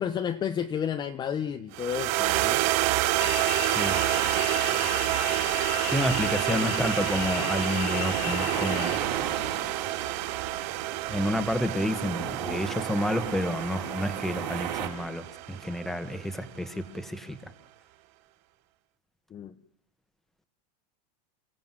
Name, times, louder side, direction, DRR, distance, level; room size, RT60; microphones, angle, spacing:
voice 1, 0.0-2.6 6.5-6.9 12.4-12.6 19.3-19.5, left 8 dB, 20° left, 8 dB, 0.9 m, -32 dB
sound 1, 1.7-16.2, right 16 dB, 50° right, 1.2 m, -29 dB
sound 2, 3.2-9.0, left 14 dB, 60° left, 2.4 m, -36 dB
voice 2, 3.7-4.0 5.9-9.2 11.1-17.5, left 1 dB, ahead, 10 dB, 1.6 m, -30 dB
sound 3, 3.8-14.9, right 9 dB, 80° right, 6.0 m, -36 dB
29.5 x 17.5 x 7.6 m, 0.69 s
supercardioid pair, 155°, 21 cm